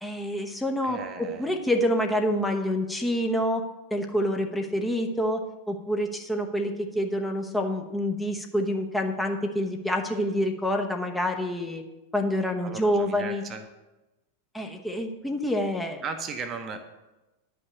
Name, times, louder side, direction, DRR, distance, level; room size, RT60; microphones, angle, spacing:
voice 1, 0.0-3.6 3.9-5.4 5.7-11.8 12.1-13.4 14.5-16.0, equal, 5° left, 2 dB, 1.0 m, -27 dB
voice 2, 0.8-1.5 12.6-13.6 16.0-16.8, right 5 dB, 30° right, 7 dB, 0.9 m, -36 dB
10.5 x 5.6 x 6.9 m, 1.0 s
figure-of-eight pair, 90°, 0 cm